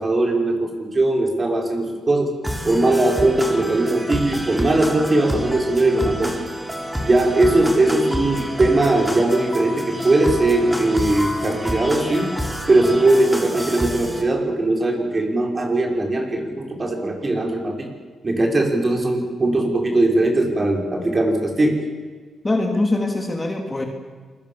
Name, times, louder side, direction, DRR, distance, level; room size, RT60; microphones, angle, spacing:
voice 1, 0.0-2.3 2.6-6.3 7.0-12.3 12.7-17.9 18.2-21.8, right 2 dB, 25° right, 2 dB, 5.6 m, -19 dB
sound 1, 2.4-14.2, equal, 5° right, 3.8 m, -28 dB
voice 2, 22.4-23.8, left 2 dB, 20° left, 3 dB, 3.2 m, -22 dB
27.5 x 22.0 x 7.3 m, 1.5 s
cardioid pair, 105°, 0 cm